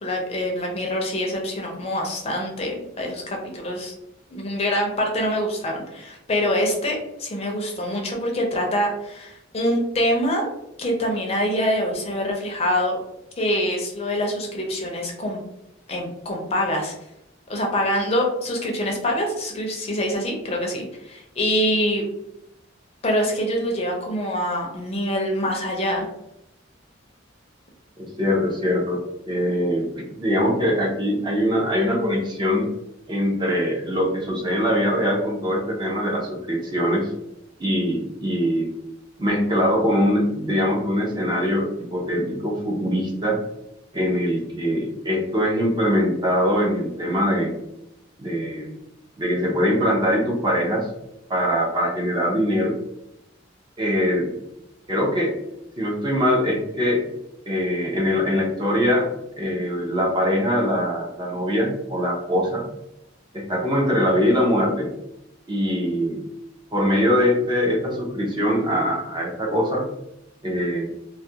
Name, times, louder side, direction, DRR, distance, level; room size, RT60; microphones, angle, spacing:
voice 1, 0.0-3.9 4.3-10.5 10.8-13.0 13.4-15.4 15.9-16.9 17.5-22.0 23.0-26.1, equal, 30° left, 0 dB, 0.5 m, -25 dB
voice 2, 28.0-32.7 33.1-37.1 37.6-38.7 39.2-43.4 43.9-47.6 48.2-48.7 49.2-50.9 51.3-52.7 53.8-54.3 54.9-55.4 55.8-57.0 57.5-59.1 59.4-62.6 63.3-64.9 65.5-66.2 66.7-69.8 70.4-70.9, equal, 25° right, -2 dB, 0.5 m, -22 dB
2.3 x 2.2 x 2.7 m, 0.83 s
head